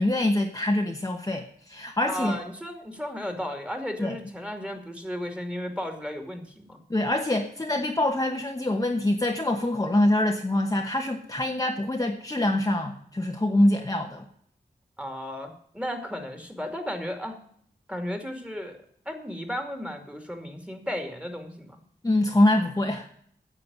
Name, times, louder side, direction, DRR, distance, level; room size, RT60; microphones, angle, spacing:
voice 1, 0.0-2.4 4.0-4.2 6.9-14.2 22.0-23.1, left 1 dB, 20° left, 3 dB, 1.1 m, -25 dB
voice 2, 2.1-6.8 15.0-17.4 17.9-18.8 19.1-21.8, equal, 5° right, 5 dB, 2.5 m, -34 dB
9.8 x 7.5 x 9.4 m, 0.63 s
wide cardioid pair, 100°, 17 cm